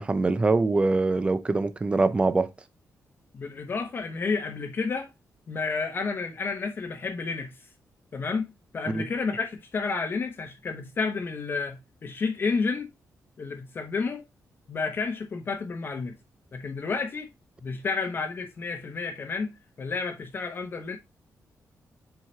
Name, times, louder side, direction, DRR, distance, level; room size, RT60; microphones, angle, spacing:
voice 1, 0.0-2.5 8.9-9.0, right 3 dB, 20° right, 0.6 m, -23 dB
voice 2, 3.3-5.1 5.5-7.5 8.1-12.9 13.4-14.2 14.7-16.1 16.5-17.3 17.6-21.0, left 4 dB, 35° left, 0.9 m, -31 dB
7.6 x 4.7 x 2.8 m
wide cardioid pair, 175°, 6 cm